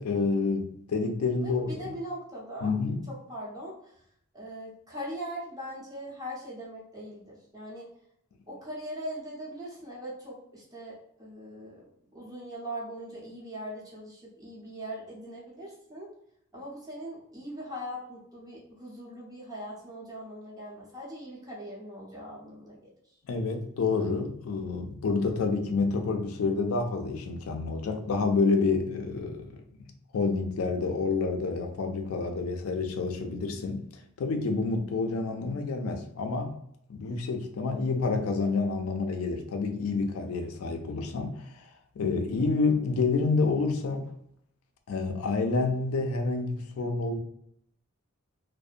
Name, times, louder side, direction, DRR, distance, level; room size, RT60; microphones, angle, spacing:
voice 1, 0.0-1.9 2.6-3.0 23.3-29.6 30.1-33.9 34.2-36.5 36.9-41.7 42.0-44.1 44.9-47.2, left 4 dB, 80° left, 5 dB, 0.4 m, -28 dB
voice 2, 1.4-2.7 3.1-3.9 4.3-7.9 8.5-11.8 12.1-16.1 16.5-22.9, equal, 20° right, -6 dB, 0.8 m, -40 dB
2.6 x 2.1 x 2.4 m, 0.72 s
head